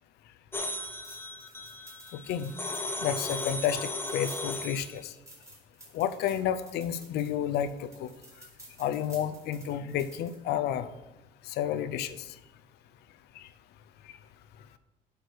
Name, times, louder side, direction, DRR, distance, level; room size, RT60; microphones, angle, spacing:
sound 1, 0.5-5.0, left 2 dB, 15° left, 0.8 m, -36 dB
sound 2, 0.8-10.4, right 2 dB, 15° right, 2.1 m, -52 dB
voice 1, 2.1-2.5 3.0-5.1 5.9-8.1 8.8-10.9 11.5-12.2 13.4-13.5, left 9 dB, 75° left, 13 dB, 0.5 m, -31 dB
8.2 x 4.8 x 4.7 m, 1.0 s
cardioid pair, 110°, 17 cm